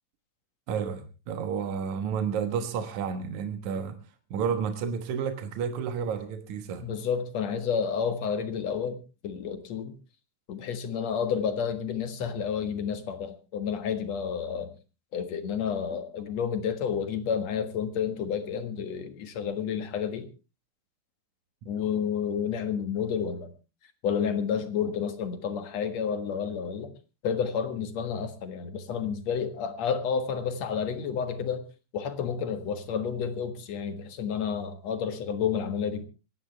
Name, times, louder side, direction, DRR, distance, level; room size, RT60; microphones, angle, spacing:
voice 1, 0.7-4.0 4.3-6.9, right 7 dB, 75° right, 2.7 m, -31 dB
voice 2, 6.8-9.9 10.5-14.7 15.1-20.3 21.7-23.5 24.0-26.9 27.2-31.6 31.9-36.1, left 7 dB, 65° left, 2.7 m, -30 dB
25.5 x 11.0 x 3.4 m
omnidirectional pair, 3.4 m